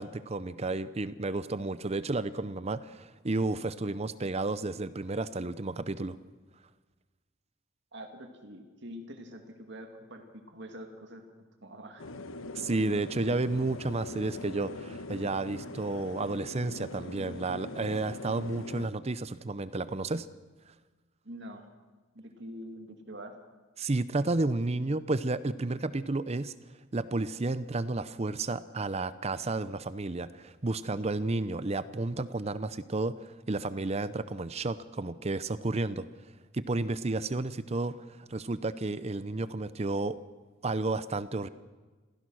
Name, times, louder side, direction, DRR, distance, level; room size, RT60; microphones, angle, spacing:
voice 1, 0.0-6.2 12.6-20.3 23.8-26.5 26.9-36.1 36.5-40.2 40.6-41.5, right 2 dB, 30° right, 14 dB, 0.6 m, -32 dB
voice 2, 7.9-11.2 11.6-12.0 21.2-21.7 22.1-23.3, equal, 60° right, 4 dB, 2.3 m, -45 dB
sound 1, 12.0-18.9, left 2 dB, 80° left, 1.1 m, -42 dB
26.5 x 16.0 x 6.3 m, 1.3 s
head